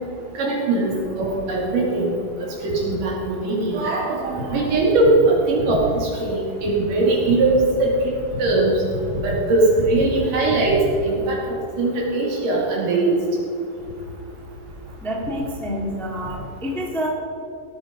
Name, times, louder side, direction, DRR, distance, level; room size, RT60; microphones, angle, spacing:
voice 1, 0.4-2.0 2.6-7.9 8.4-8.7 9.1-11.4 11.8-13.1, right 2 dB, 70° right, -3 dB, 4.4 m, -20 dB
voice 2, 15.0-17.1, equal, ahead, -2 dB, 1.0 m, -28 dB
16.5 x 9.3 x 5.4 m, 2.7 s
omnidirectional pair, 4.0 m